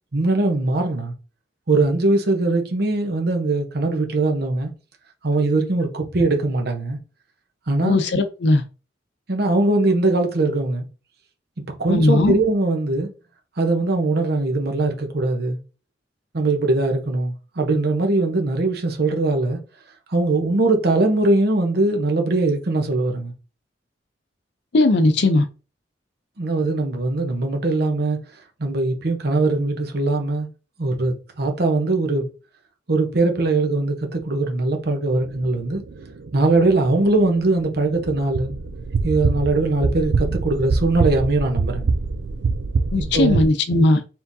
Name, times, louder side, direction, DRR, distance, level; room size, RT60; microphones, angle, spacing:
voice 1, 0.1-1.1 1.7-4.7 5.2-7.0 7.7-8.0 9.3-10.8 11.8-13.1 13.6-15.6 16.3-19.6 20.1-23.3 26.4-28.2 28.6-30.5 30.8-32.3 32.9-35.8 36.3-38.6 39.0-41.9 43.0-43.4, right 2 dB, 60° right, 0.9 m, -21 dB
voice 2, 7.8-8.6 11.9-12.3 24.7-25.5 42.9-44.0, left 2 dB, 70° left, 0.6 m, -17 dB
sound 1, 35.2-43.5, right 4 dB, 85° right, 0.4 m, -25 dB
4.4 x 3.7 x 2.7 m
head